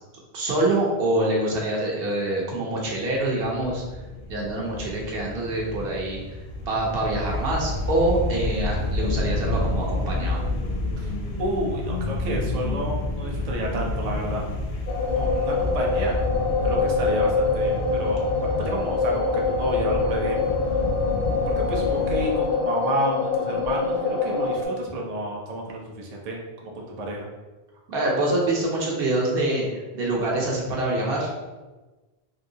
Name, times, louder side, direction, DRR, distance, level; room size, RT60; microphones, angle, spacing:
voice 1, 0.3-3.8 4.3-6.2 6.7-10.4 27.9-31.3, right 1 dB, 65° right, -2 dB, 0.9 m, -25 dB
sound 1, 3.2-22.3, left 2 dB, 75° left, 0.8 m, -29 dB
voice 2, 11.4-14.4 15.1-16.2 16.6-18.3 18.6-20.6 21.5-27.3, right 1 dB, 50° right, -1 dB, 0.5 m, -30 dB
sound 2, 14.9-24.6, left 4 dB, 55° left, 0.5 m, -25 dB
3.1 x 2.7 x 2.6 m, 1.2 s
omnidirectional pair, 1.1 m